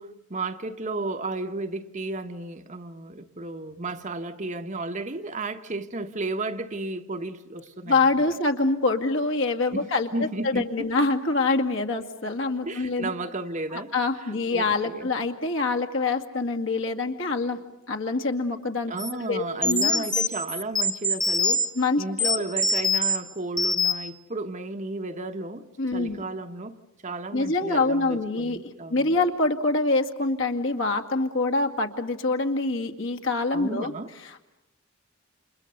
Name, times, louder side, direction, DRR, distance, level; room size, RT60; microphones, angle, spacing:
voice 1, 0.0-8.0 9.7-9.9 10.1-10.9 12.7-13.9 14.5-15.1 18.9-21.7 22.0-25.7 25.9-26.8 27.0-29.2 33.5-34.1, right 2 dB, 35° right, 1.2 m, -33 dB
voice 2, 7.9-13.1 13.7-17.6 17.9-18.9 19.3-20.1 21.8-22.0 22.3-22.4 25.8-26.2 27.3-33.9 34.3-34.4, left 3 dB, 65° left, 2.2 m, -25 dB
sound 1, 19.0-19.1 19.6-21.7 22.2-23.2 23.6-24.1, left 2 dB, 5° left, 1.0 m, -24 dB
30.0 x 28.0 x 6.8 m
head